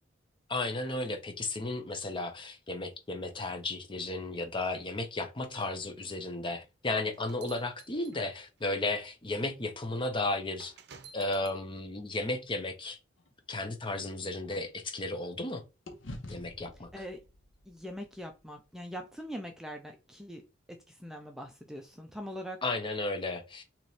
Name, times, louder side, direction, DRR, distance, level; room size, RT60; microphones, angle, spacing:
voice 1, 0.5-10.7 11.1-13.0 13.5-15.6 16.3-16.9 22.6-23.6, left 2 dB, 25° left, 0.7 m, -34 dB
sound 1, 6.8-8.6 9.4-9.5 10.6-11.6, right 6 dB, 60° right, 0.6 m, -52 dB
sound 2, 13.2-15.5 15.8-20.1, left 1 dB, 90° left, 0.9 m, -51 dB
voice 2, 17.7-20.4 20.9-22.6, equal, 5° right, 0.4 m, -42 dB
3.2 x 2.9 x 4.1 m
head